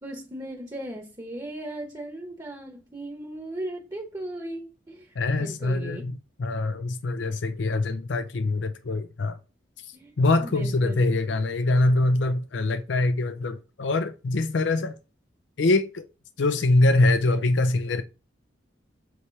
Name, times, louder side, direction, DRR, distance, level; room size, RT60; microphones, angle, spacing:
voice 1, 0.0-6.0 9.9-10.1 10.4-11.1, right 1 dB, 20° right, 1.2 m, -37 dB
voice 2, 5.2-9.4 9.8-15.0 15.6-16.1 16.4-18.0, left 2 dB, 65° left, 0.5 m, -24 dB
8.0 x 3.2 x 4.7 m
head